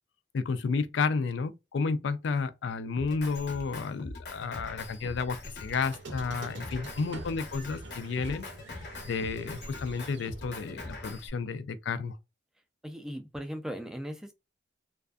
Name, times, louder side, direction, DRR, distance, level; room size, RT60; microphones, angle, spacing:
voice 1, 0.3-8.5 9.0-12.2, left 4 dB, 85° left, 0.4 m, -31 dB
Drum kit, 3.0-11.3, left 2 dB, 60° left, 0.7 m, -43 dB
Squeak, 5.7-11.0, right 3 dB, 85° right, 0.6 m, -47 dB
voice 2, 12.8-14.3, equal, 5° right, 0.3 m, -38 dB
2.5 x 2.3 x 2.2 m
head